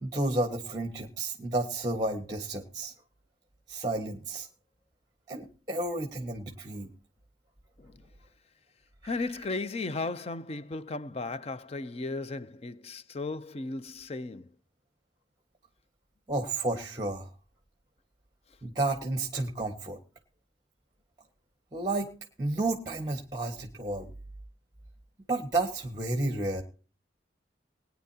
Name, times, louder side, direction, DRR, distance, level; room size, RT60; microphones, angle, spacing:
voice 1, 0.0-2.9 3.7-4.5 5.3-6.9 9.0-9.3 16.3-17.3 18.6-20.0 21.7-22.1 22.4-24.1 25.3-26.6, right 2 dB, 20° right, 1.4 m, -31 dB
voice 2, 9.0-14.5, left 3 dB, 35° left, 0.5 m, -35 dB
20.5 x 9.6 x 2.8 m
head